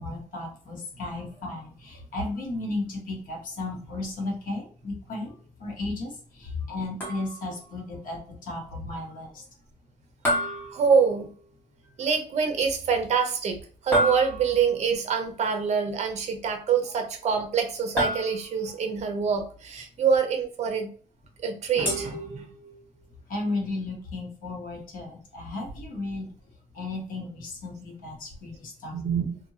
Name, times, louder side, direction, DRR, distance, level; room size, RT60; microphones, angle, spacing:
voice 1, 0.0-5.3 5.6-9.4 23.3-26.3 26.7-29.0, left 2 dB, 80° left, -1 dB, 1.3 m, -34 dB
sound 1, 7.0-7.6 10.2-11.5 13.9-14.8 18.0-18.8 21.8-22.9, equal, 15° left, 1.3 m, -29 dB
voice 2, 10.7-11.3 12.0-13.6 13.8-20.9 21.4-22.4 28.9-29.4, right 6 dB, 55° right, 6 dB, 0.7 m, -25 dB
2.8 x 2.7 x 2.7 m, 0.44 s
wide cardioid pair, 165°, 14 cm